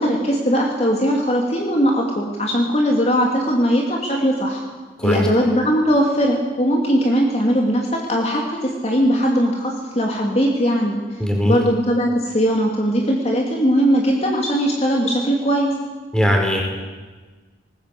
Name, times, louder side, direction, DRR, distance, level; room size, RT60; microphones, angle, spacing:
voice 1, 0.0-4.6 5.0-11.0 11.4-15.7, equal, 35° left, 0 dB, 2.8 m, -19 dB
voice 2, 11.2-11.6 16.1-16.6, equal, 5° left, 1 dB, 4.7 m, -19 dB
20.0 x 20.0 x 8.5 m, 1.3 s
head